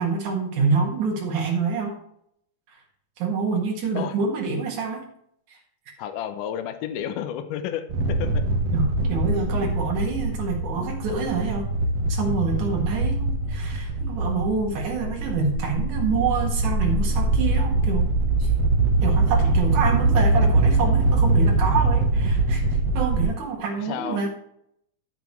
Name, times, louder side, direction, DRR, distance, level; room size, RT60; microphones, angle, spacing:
voice 1, 0.0-2.0 2.7-2.8 3.2-5.0 5.5-5.6 5.9-6.0 8.7-11.6 12.1-18.1 18.4-18.5 19.0-24.3, right 5 dB, 60° right, 0 dB, 3.1 m, -27 dB
voice 2, 6.0-7.8 8.2-8.4 23.8-24.2, left 9 dB, 75° left, 7 dB, 2.0 m, -31 dB
sound 1, 7.9-23.3, right 2 dB, 75° right, 1.5 m, -22 dB
12.5 x 7.2 x 3.1 m, 0.70 s
omnidirectional pair, 4.4 m